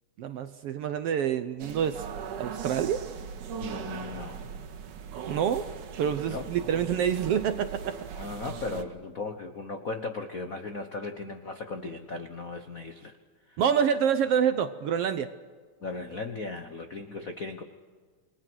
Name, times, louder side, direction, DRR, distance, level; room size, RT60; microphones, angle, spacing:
voice 1, 0.2-2.0 2.4-3.0 5.3-5.7 6.0-8.0 13.6-15.3, right 8 dB, 70° right, 10 dB, 1.5 m, -27 dB
sound 1, 1.6-8.8, right 7 dB, 90° right, 3.1 m, -39 dB
voice 2, 3.6-4.7 6.3-6.5 8.2-13.2 13.5-13.6 15.8-17.6, left 3 dB, 85° left, 6 dB, 0.7 m, -37 dB
29.0 x 21.5 x 6.3 m, 1.5 s
omnidirectional pair, 3.5 m